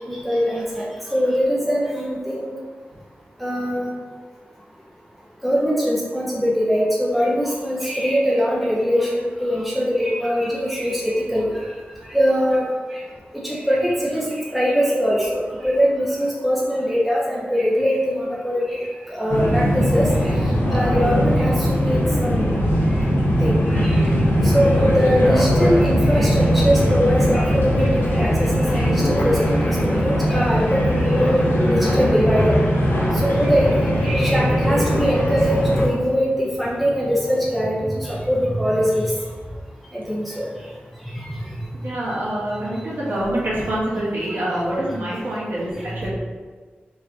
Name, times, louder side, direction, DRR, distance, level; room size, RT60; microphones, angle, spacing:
voice 1, 0.1-0.8 1.1-2.5 3.4-3.9 5.4-11.5 12.1-12.6 12.9-13.0 13.4-14.2 14.5-18.8 19.1-20.1 20.7-21.5 21.9-22.7 23.4-24.0 24.5-29.4 29.6-32.5 33.2-39.1 39.9-40.5, equal, ahead, -5 dB, 0.6 m, -22 dB
sound 1, 19.3-35.9, equal, 75° left, 1.0 m, -19 dB
voice 2, 41.8-46.1, right 1 dB, 60° right, -8 dB, 1.4 m, -25 dB
3.1 x 3.1 x 3.9 m, 1.5 s
wide cardioid pair, 115°, 4 cm